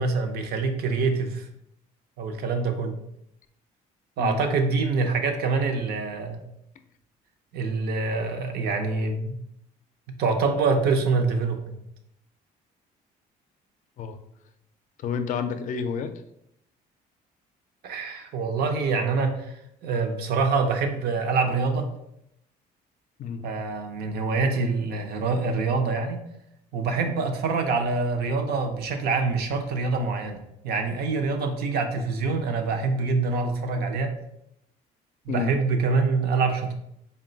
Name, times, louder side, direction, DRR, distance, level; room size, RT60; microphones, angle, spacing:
voice 1, 0.0-1.5 2.2-2.9 4.2-6.4 7.5-9.3 10.2-11.8 17.8-21.9 23.4-26.2 26.7-34.1 35.3-36.7, right 4 dB, 70° right, 5 dB, 0.6 m, -25 dB
voice 2, 15.0-16.1 23.2-23.4 27.0-27.1 35.3-35.5, left 6 dB, 50° left, 9 dB, 0.4 m, -29 dB
3.6 x 2.2 x 3.8 m, 0.78 s
cardioid pair, 110°, 17 cm